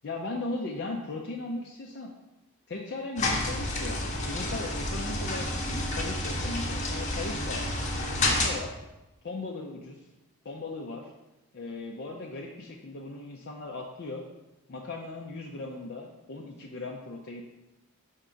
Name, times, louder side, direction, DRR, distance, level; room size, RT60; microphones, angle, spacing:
voice 1, 0.0-2.1 2.7-7.6 8.2-8.7 9.2-10.0 10.4-11.1 11.5-14.2 14.7-17.4, left 2 dB, 50° left, -1 dB, 0.5 m, -37 dB
sound 1, 3.2-8.5, left 1 dB, 30° left, 0.9 m, -30 dB
5.1 x 3.6 x 5.6 m, 1.0 s
head